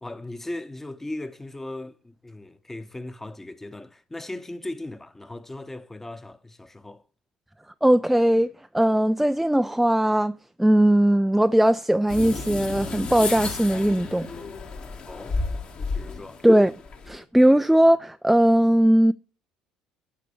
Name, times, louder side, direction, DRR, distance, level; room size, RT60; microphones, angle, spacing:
voice 1, 0.0-7.0 15.1-15.4 15.9-16.4, left 1 dB, 10° left, 0.9 m, -38 dB
voice 2, 7.8-10.3 10.6-14.3 16.4-16.7 17.1-19.1, right 1 dB, 5° right, 0.3 m, -19 dB
sound 1, 12.1-17.2, left 4 dB, 45° left, 1.6 m, -32 dB
11.5 x 4.1 x 6.9 m
hypercardioid pair, 70°, 3 cm